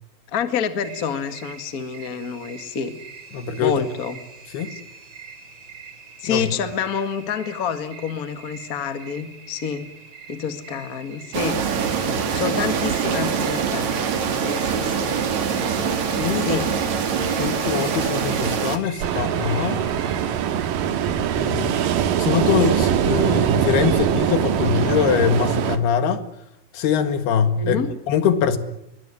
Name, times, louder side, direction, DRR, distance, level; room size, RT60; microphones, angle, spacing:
voice 1, 0.3-3.0 3.6-4.2 4.7-4.8 6.2-9.9 10.3-11.6 12.3-13.9 14.4-15.2 16.4-16.7 27.6-27.9, left 7 dB, 35° left, 10 dB, 1.5 m, -28 dB
sound 1, 0.8-20.5, right 5 dB, 35° right, 3.3 m, -43 dB
voice 2, 3.3-3.9 4.5-4.7 6.2-6.5 12.0-12.2 16.2-16.5 17.4-19.8 21.4-21.7 22.2-26.2 26.7-27.8 28.1-28.6, left 7 dB, 80° left, 10 dB, 3.8 m, -23 dB
sound 2, 11.3-18.8, right 6 dB, 50° right, 3.1 m, -24 dB
Ocean, 19.0-25.8, right 9 dB, 65° right, 2.8 m, -22 dB
22.5 x 21.5 x 9.8 m, 0.83 s
omnidirectional pair, 4.5 m